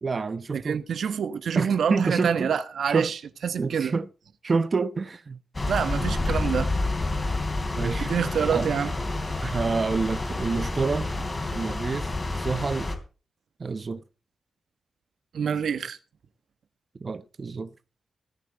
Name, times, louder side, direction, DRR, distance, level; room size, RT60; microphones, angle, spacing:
voice 1, 0.0-0.8 1.5-2.5 2.9-3.1 3.6-4.1 4.4-5.4 7.7-8.1 8.5-8.7 9.4-12.1 12.3-12.9 13.6-14.0 17.0-17.7, right 4 dB, 40° right, 0.9 m, -28 dB
voice 2, 0.5-3.9 5.7-6.7 8.1-8.9 15.3-16.0, right 7 dB, 85° right, 1.4 m, -26 dB
sound 1, 5.5-13.0, left 2 dB, 25° left, 3.3 m, -29 dB
18.0 x 9.9 x 4.1 m
wide cardioid pair, 135°, 0 cm